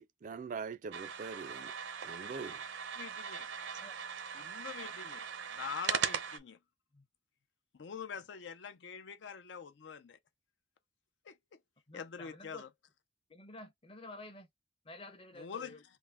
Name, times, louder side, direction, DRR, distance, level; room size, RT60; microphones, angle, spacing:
voice 1, 0.0-1.7 2.0-2.6, right 5 dB, 40° right, 0.3 m, -43 dB
sound 1, 0.9-6.4, right 7 dB, 80° right, 0.6 m, -39 dB
voice 2, 3.0-3.5 4.3-5.2 5.5-6.6 7.7-10.2 11.2-11.6 11.9-12.7 15.4-15.8, left 6 dB, 65° left, 0.5 m, -44 dB
voice 3, 11.9-12.6 13.3-14.5 14.8-15.8, left 2 dB, 30° left, 0.7 m, -51 dB
3.5 x 2.1 x 3.4 m
head